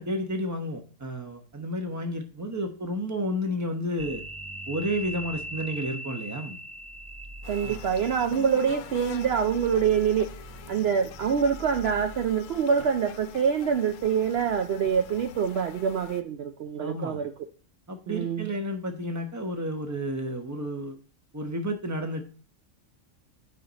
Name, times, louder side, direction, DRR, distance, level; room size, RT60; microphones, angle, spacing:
voice 1, 0.0-4.2 4.7-6.6 7.6-7.8 16.8-17.2 17.9-21.0 21.3-22.2, equal, 15° right, 5 dB, 0.9 m, -31 dB
sound 1, 4.0-12.6, right 1 dB, 35° right, 0.3 m, -41 dB
sound 2, 7.4-16.2, left 10 dB, 85° left, 1.0 m, -45 dB
voice 2, 7.5-17.3 18.1-18.5, right 7 dB, 60° right, 6 dB, 0.7 m, -25 dB
8.7 x 5.1 x 4.0 m, 0.41 s
omnidirectional pair, 1.3 m